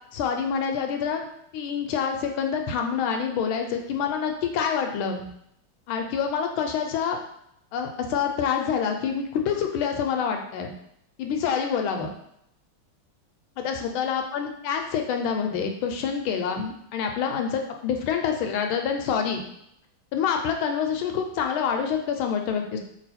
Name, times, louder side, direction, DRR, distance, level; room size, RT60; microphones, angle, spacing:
voice 1, 0.1-1.2 1.5-5.2 5.9-7.2 7.7-10.7 11.2-12.1 13.6-19.4 20.1-22.8, left 7 dB, 80° left, 4 dB, 1.4 m, -27 dB
3.3 x 3.0 x 4.1 m, 0.76 s
omnidirectional pair, 2.3 m